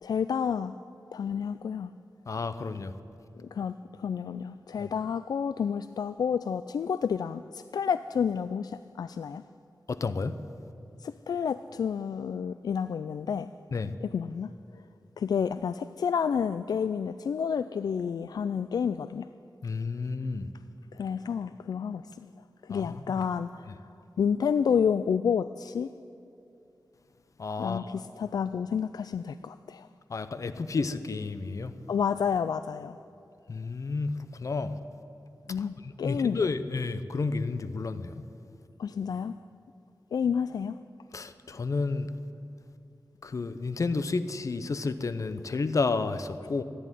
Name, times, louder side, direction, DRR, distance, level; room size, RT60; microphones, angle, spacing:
voice 1, 0.0-0.7 1.1-1.9 3.4-9.4 11.0-13.5 14.0-14.5 15.2-19.3 20.9-22.0 22.6-23.7 24.2-25.9 27.6-29.9 31.9-33.0 35.5-36.4 38.8-39.3 40.1-40.8, left 7 dB, 80° left, 13 dB, 0.3 m, -30 dB
voice 2, 2.3-2.9 4.8-4.9 9.9-10.4 13.7-13.9 19.6-20.5 22.7-23.3 27.4-27.9 30.1-31.7 33.5-34.8 35.6-38.1 41.1-42.1 43.2-46.6, left 4 dB, 55° left, 11 dB, 0.8 m, -31 dB
14.5 x 10.5 x 9.1 m, 2.7 s
wide cardioid pair, 95°, 7 cm